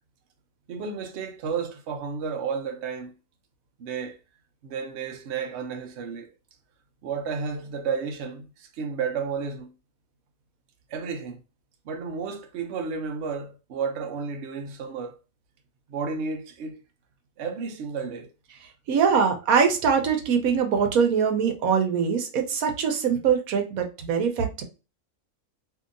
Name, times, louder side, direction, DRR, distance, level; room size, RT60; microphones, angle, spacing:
voice 1, 0.7-3.1 3.8-4.2 4.6-6.3 7.0-9.7 10.9-11.4 11.8-15.2 15.9-16.8 17.4-18.3, right 5 dB, 60° right, 0.8 m, -32 dB
voice 2, 18.9-24.6, right 6 dB, 85° right, 1.1 m, -23 dB
2.8 x 2.7 x 2.5 m
omnidirectional pair, 1.5 m